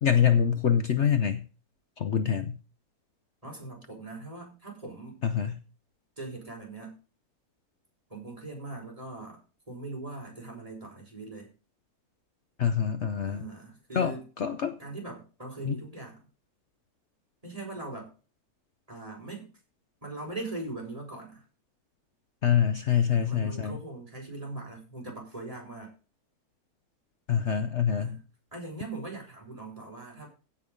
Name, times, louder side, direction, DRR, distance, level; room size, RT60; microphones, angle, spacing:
voice 1, 0.0-1.5 2.0-2.6 5.2-5.6 12.6-13.4 13.9-14.8 15.6-15.7 22.4-23.8 27.3-28.2, left 8 dB, 55° left, 1.0 m, -25 dB
voice 2, 3.4-5.2 6.2-7.0 8.1-9.4 9.7-11.5 13.3-14.2 14.8-16.2 17.4-18.1 18.9-19.5 20.0-21.4 22.9-25.9 27.9-28.2 28.5-30.3, right 2 dB, 20° right, 4.8 m, -40 dB
16.0 x 5.6 x 5.2 m
omnidirectional pair, 1.6 m